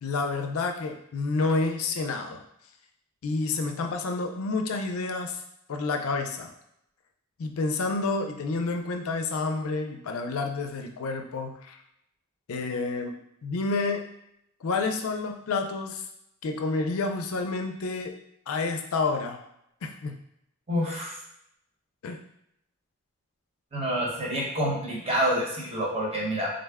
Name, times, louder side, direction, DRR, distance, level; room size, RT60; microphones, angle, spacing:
voice 1, 0.0-2.4 3.2-5.4 5.7-6.5 7.4-11.8 12.5-13.1 13.4-14.0 14.6-16.0 16.4-18.1 18.5-19.4 19.8-20.2 22.0-22.2, left 3 dB, 80° left, 4 dB, 0.4 m, -29 dB
voice 2, 20.7-21.1 23.7-26.5, equal, 30° right, -4 dB, 1.0 m, -27 dB
3.8 x 2.1 x 3.4 m, 0.78 s
head